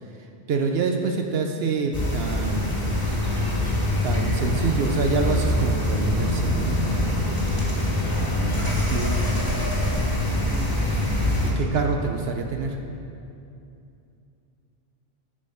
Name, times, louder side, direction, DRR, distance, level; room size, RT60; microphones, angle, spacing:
voice 1, 0.5-2.9 4.0-7.1 8.6-9.3 11.4-12.8, right 4 dB, 70° right, 3 dB, 0.9 m, -27 dB
sound 1, 1.9-11.5, left 1 dB, 20° left, 1.5 m, -24 dB
voice 2, 6.9-8.0, equal, 5° right, -3 dB, 1.1 m, -40 dB
9.9 x 5.2 x 5.6 m, 2.6 s
omnidirectional pair, 1.1 m